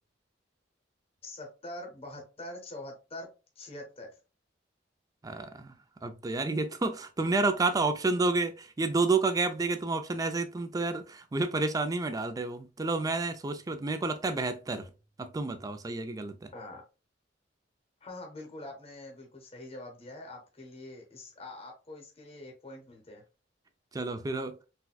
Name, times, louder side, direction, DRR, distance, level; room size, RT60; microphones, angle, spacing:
voice 1, 1.2-3.3 3.6-4.1 16.5-16.8 18.0-23.2, left 1 dB, 30° left, 0.8 m, -44 dB
voice 2, 5.2-5.7 6.0-14.9 15.2-16.5 23.9-24.6, right 3 dB, 20° right, 0.3 m, -30 dB
4.1 x 2.2 x 2.2 m
head